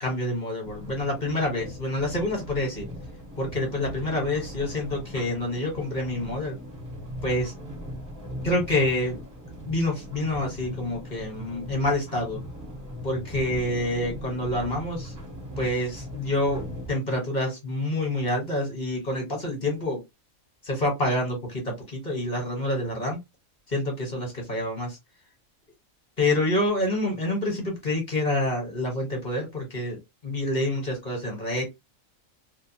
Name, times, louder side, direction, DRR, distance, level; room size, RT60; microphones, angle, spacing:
voice 1, 0.0-2.9 3.4-6.5 7.2-7.5 8.4-9.2 9.7-12.4 13.0-15.1 15.6-20.0 20.6-23.2 23.7-25.0 26.2-31.6, left 1 dB, 35° left, 1.2 m, -27 dB
sound 1, 0.6-16.9, equal, 15° right, 0.6 m, -39 dB
2.5 x 2.4 x 2.7 m
omnidirectional pair, 1.5 m